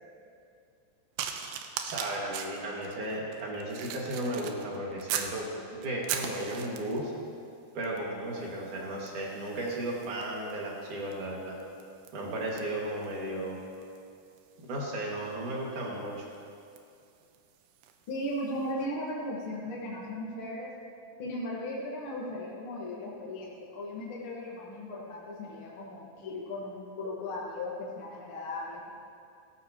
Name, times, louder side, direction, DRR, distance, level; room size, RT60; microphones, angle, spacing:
sound 1, 1.2-5.4 5.8-7.1 7.8-8.1 8.4-18.1 18.8-18.9, right 9 dB, 85° right, 2.8 m, -41 dB
voice 1, 1.8-7.1 7.7-11.6 12.1-13.6 14.6-16.2, right 1 dB, 55° right, -3 dB, 3.2 m, -35 dB
voice 2, 18.1-20.7 21.2-28.9, left 1 dB, 55° left, -5 dB, 1.5 m, -37 dB
17.5 x 14.0 x 3.0 m, 2.4 s
omnidirectional pair, 4.7 m